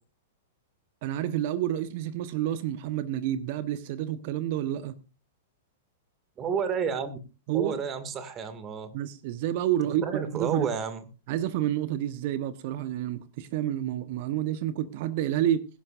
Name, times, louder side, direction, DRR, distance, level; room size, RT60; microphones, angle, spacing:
voice 1, 1.0-4.9 7.5-7.8 8.9-10.7 11.3-15.7, right 12 dB, 50° right, 1.1 m, -29 dB
voice 2, 6.4-7.2 7.5-8.9 10.0-11.0, right 6 dB, 25° right, 2.3 m, -30 dB
21.5 x 11.5 x 2.6 m
figure-of-eight pair, 100°, 0 cm